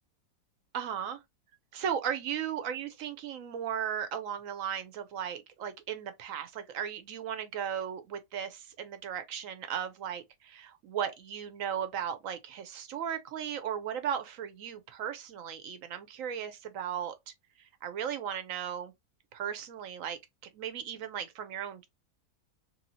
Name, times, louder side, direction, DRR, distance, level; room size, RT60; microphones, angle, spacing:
voice 1, 0.7-1.2 1.7-17.1 17.8-18.9 19.3-20.2 20.5-21.9, right 8 dB, 65° right, 0.9 m, -36 dB
3.1 x 2.7 x 2.6 m
omnidirectional pair, 1.8 m